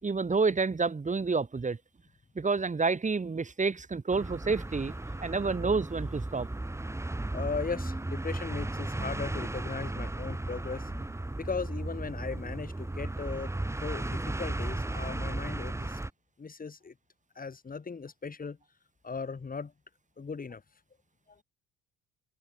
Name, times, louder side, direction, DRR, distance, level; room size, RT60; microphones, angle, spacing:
voice 1, 0.0-1.8 2.3-4.9 5.2-6.5, right 4 dB, 25° right, 4.9 m, -29 dB
sound 1, 4.1-16.1, right 2 dB, 10° right, 2.3 m, -35 dB
voice 2, 7.3-10.9 11.4-13.5 13.8-16.0 16.4-16.9 17.4-18.6 19.0-19.7 20.2-20.6 21.3-21.4, left 5 dB, 30° left, 5.7 m, -37 dB
hypercardioid pair, 70°, 30 cm